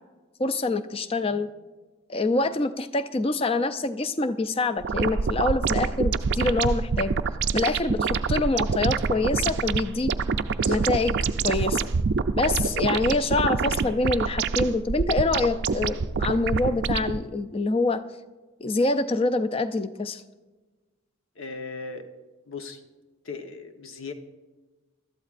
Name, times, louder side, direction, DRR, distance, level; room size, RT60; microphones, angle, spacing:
voice 1, 0.4-1.5 2.1-7.2 7.5-10.1 10.7-11.2 11.4-11.9 12.3-18.0 18.6-20.2, left 2 dB, 25° left, 11 dB, 0.4 m, -25 dB
sound 1, 4.8-17.2, right 5 dB, 50° right, 0.4 m, -26 dB
voice 2, 10.6-10.9 12.6-12.9 16.5-16.6 21.3-22.1 22.5-22.8 23.2-24.1, left 4 dB, 70° left, 6 dB, 1.0 m, -38 dB
20.0 x 12.5 x 2.5 m, 1.2 s
head